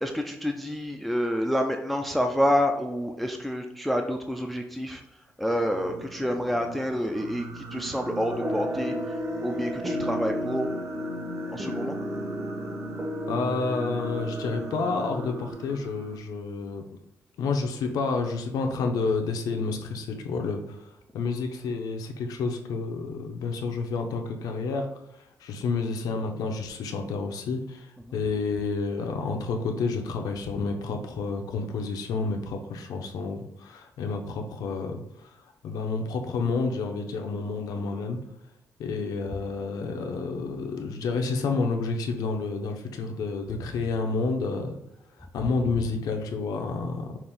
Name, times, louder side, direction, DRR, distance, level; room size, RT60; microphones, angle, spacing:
voice 1, 0.0-5.0 5.4-8.9 9.4-10.7 11.5-12.0, equal, ahead, 4 dB, 0.3 m, -28 dB
Singing, 5.5-16.2, right 4 dB, 60° right, 0.8 m, -41 dB
sound 1, 8.3-15.5, left 1 dB, 20° right, 0.7 m, -33 dB
voice 2, 13.3-16.8 17.4-20.8 21.1-24.9 25.4-35.0 35.6-38.2 38.8-44.7 45.3-47.2, left 4 dB, 90° left, 4 dB, 0.7 m, -29 dB
5.8 x 2.5 x 3.5 m, 0.81 s
wide cardioid pair, 165°, 6 cm